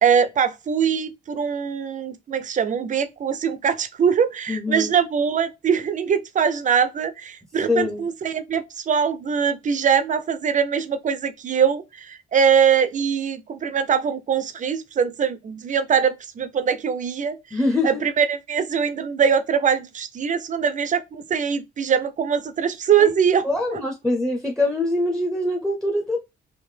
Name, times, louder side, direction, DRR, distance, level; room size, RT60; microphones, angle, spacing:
voice 1, 0.0-23.8, right 7 dB, 40° right, 0.5 m, -22 dB
voice 2, 4.5-4.9 7.7-8.1 17.5-18.0 23.0-23.1 23.4-26.2, left 2 dB, 5° left, 0.6 m, -23 dB
3.4 x 2.5 x 3.2 m
cardioid pair, 90°, 20 cm